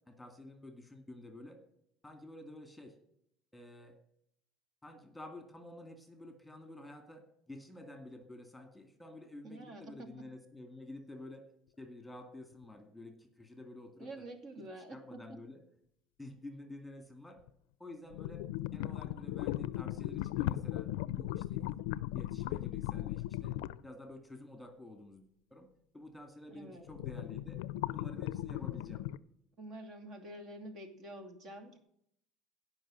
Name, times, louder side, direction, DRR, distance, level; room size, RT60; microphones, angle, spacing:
voice 1, 0.1-1.6 2.0-3.0 3.5-4.0 4.8-11.4 11.8-14.3 14.6-15.6 16.2-17.4 17.8-21.7 22.1-27.6 27.9-29.0, left 1 dB, 5° left, 6 dB, 2.2 m, -50 dB
voice 2, 9.4-10.1 14.0-15.4 26.5-26.9 29.6-31.8, right 1 dB, 50° right, 6 dB, 2.5 m, -48 dB
sound 1, 12.6-12.7 17.5-17.6 18.1-23.9 26.8-29.2, left 15 dB, 90° left, 0.4 m, -37 dB
16.5 x 5.8 x 7.6 m, 0.73 s
supercardioid pair, 110°, 0 cm